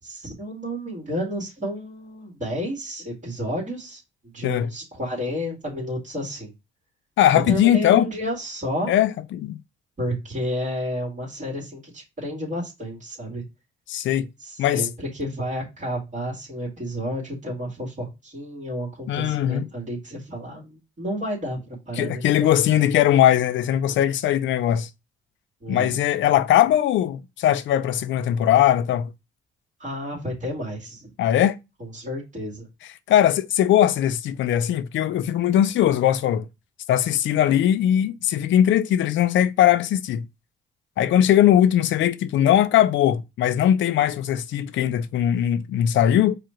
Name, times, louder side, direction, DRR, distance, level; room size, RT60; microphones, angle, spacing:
voice 1, 0.0-4.0 4.3-6.5 7.3-8.9 10.0-13.4 14.4-22.5 25.6-26.0 29.8-31.1 31.8-32.7, equal, 40° right, 2.2 m, -31 dB
voice 2, 7.2-8.1 8.9-9.6 13.9-14.3 14.6-14.9 19.1-19.7 22.0-24.9 25.7-29.1 31.2-31.6 33.1-36.5 36.9-40.3 41.0-46.4, left 11 dB, 70° left, 0.5 m, -20 dB
4.8 x 2.5 x 4.3 m
cardioid pair, 90°, 20 cm